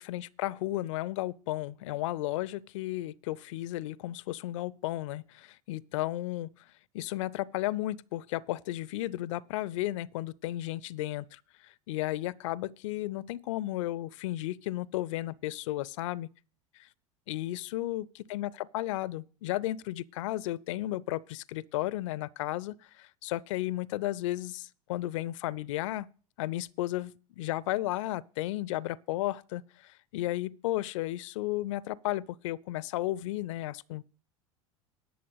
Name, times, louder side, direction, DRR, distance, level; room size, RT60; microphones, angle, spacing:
voice 1, 0.0-6.5 6.9-16.3 16.8-16.9 17.3-26.1 26.4-34.0, left 16 dB, 60° left, 0.5 m, -34 dB
11.0 x 6.8 x 6.6 m
hypercardioid pair, 85°, 18 cm